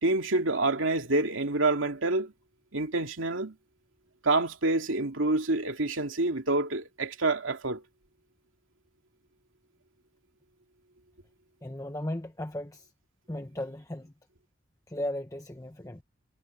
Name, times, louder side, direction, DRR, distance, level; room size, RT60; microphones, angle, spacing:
voice 1, 0.0-2.3 2.7-3.5 4.2-7.8, right 2 dB, 90° right, 2.6 m, -27 dB
voice 2, 11.6-12.9 13.3-14.1 14.9-16.0, left 1 dB, 15° left, 0.9 m, -36 dB
head